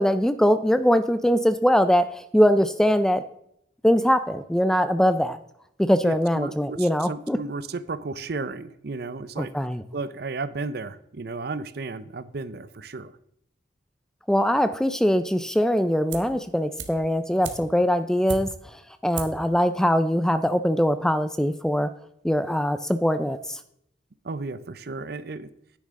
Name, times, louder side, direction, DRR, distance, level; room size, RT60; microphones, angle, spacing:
voice 1, 0.0-3.3 3.8-5.4 5.8-7.4 9.4-9.8 14.3-18.5 19.0-21.9 22.2-23.6, equal, 5° left, 11 dB, 0.3 m, -22 dB
voice 2, 6.0-9.5 9.9-13.1 24.2-25.5, right 3 dB, 55° right, 14 dB, 0.6 m, -33 dB
sound 1, 16.1-16.4 16.8-18.8 19.1-19.5 19.8-19.9, right 5 dB, 70° right, 1.3 m, -37 dB
9.8 x 9.5 x 3.7 m, 0.74 s
head